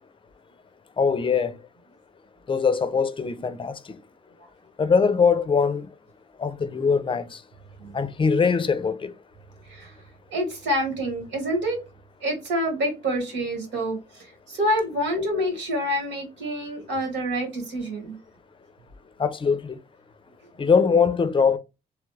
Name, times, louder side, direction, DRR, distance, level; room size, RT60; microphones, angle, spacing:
voice 1, 1.0-1.6 2.5-3.8 4.8-5.9 6.4-7.4 7.9-9.1 19.2-19.8 20.6-21.6, left 5 dB, 30° left, 0.5 m, -22 dB
voice 2, 10.3-11.8 12.2-18.2, equal, 85° right, 1.5 m, -27 dB
3.0 x 2.4 x 3.2 m
cardioid pair, 85°, 19 cm